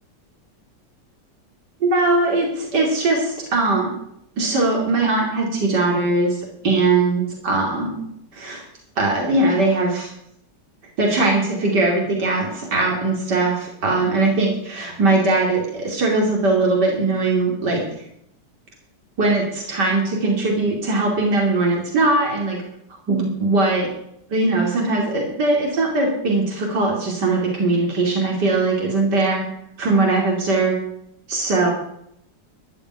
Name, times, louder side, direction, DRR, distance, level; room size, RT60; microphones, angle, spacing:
voice 1, 1.8-3.9 4.4-8.1 8.3-8.6 9.0-10.1 11.0-17.8 19.2-22.6 23.1-23.9 24.3-29.4 29.8-30.8 31.3-31.7, right 2 dB, 70° right, -1 dB, 3.5 m, -20 dB
13.5 x 7.2 x 9.9 m, 0.75 s
omnidirectional pair, 1.9 m